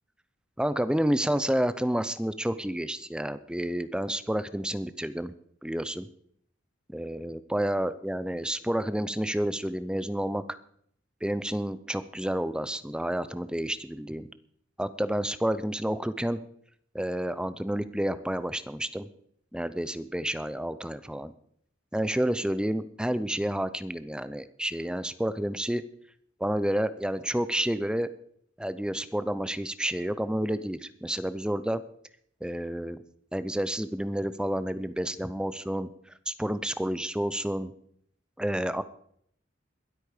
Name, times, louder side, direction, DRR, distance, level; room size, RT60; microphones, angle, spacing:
voice 1, 0.6-5.3 5.6-6.1 6.9-10.4 11.2-14.3 14.8-16.4 16.9-19.1 19.5-21.3 21.9-25.8 26.4-28.1 28.6-31.8 32.4-33.0 33.3-35.9 36.3-37.7 38.4-38.8, right 1 dB, 5° right, 14 dB, 0.6 m, -30 dB
22.0 x 8.4 x 5.0 m, 0.66 s
head